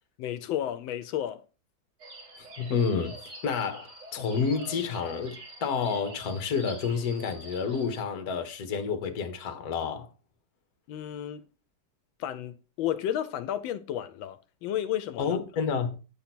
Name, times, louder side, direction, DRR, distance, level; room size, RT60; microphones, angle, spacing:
voice 1, 0.2-1.4 10.9-11.5 12.2-15.4, left 11 dB, 85° left, 1.4 m, -32 dB
sound 1, 2.0-8.0, right 2 dB, 65° right, 2.6 m, -46 dB
voice 2, 2.6-3.2 3.4-10.1 15.2-16.0, left 6 dB, 55° left, 1.4 m, -29 dB
8.4 x 2.8 x 5.9 m
omnidirectional pair, 2.1 m